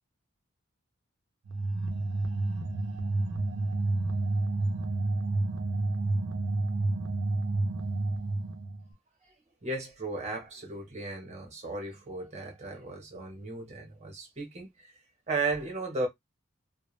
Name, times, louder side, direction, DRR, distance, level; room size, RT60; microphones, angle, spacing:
sound 1, 1.5-8.8, right 2 dB, 75° right, 0.6 m, -30 dB
voice 1, 9.6-14.7 15.3-16.1, right 3 dB, 30° right, 0.9 m, -35 dB
2.1 x 2.1 x 3.1 m
head